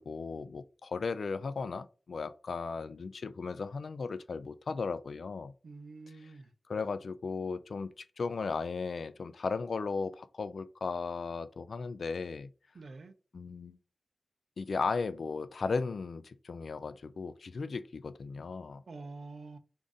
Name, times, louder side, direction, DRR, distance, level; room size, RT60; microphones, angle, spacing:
voice 1, 0.0-5.5 6.1-6.3 6.7-12.5 13.3-13.8 14.6-18.8, left 4 dB, 70° left, 0.3 m, -36 dB
voice 2, 5.6-6.5 12.7-13.1 18.9-19.6, right 3 dB, 70° right, 0.6 m, -46 dB
5.1 x 2.6 x 3.6 m
wide cardioid pair, 120°, 0 cm